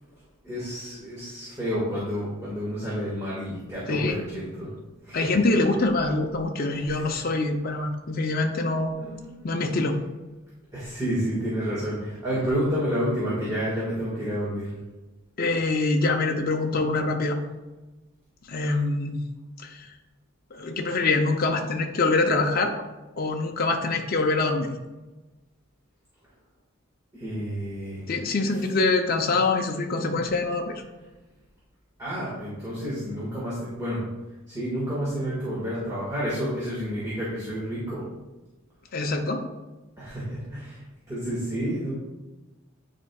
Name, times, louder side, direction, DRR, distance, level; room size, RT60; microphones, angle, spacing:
voice 1, 0.4-4.7 5.0-5.3 6.7-7.1 9.0-9.5 10.7-14.7 18.7-18.8 27.1-28.0 32.0-34.0 34.5-38.1 40.0-40.8 41.1-41.9, equal, 15° right, -9 dB, 1.7 m, -30 dB
voice 2, 3.9-4.2 5.1-8.9 9.4-10.0 15.4-17.4 18.5-19.2 19.6-19.9 20.5-22.7 23.2-24.7 28.1-30.8 38.9-39.4, left 3 dB, 45° left, 2 dB, 0.5 m, -24 dB
10.0 x 4.3 x 2.3 m, 1.1 s
head